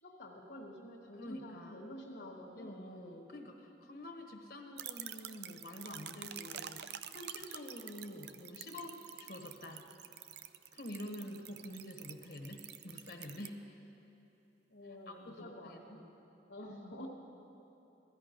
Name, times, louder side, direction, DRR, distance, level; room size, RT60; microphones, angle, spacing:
voice 1, 0.0-2.7 14.7-16.0 16.5-17.1, left 1 dB, 70° left, -6 dB, 1.6 m, -49 dB
voice 2, 1.2-1.8 2.6-9.9 10.7-13.7 15.1-16.0, left 1 dB, 55° left, 3 dB, 1.2 m, -47 dB
sound 1, 4.8-13.5, right 10 dB, 60° right, 0.4 m, -48 dB
16.5 x 13.5 x 5.2 m, 2.9 s
head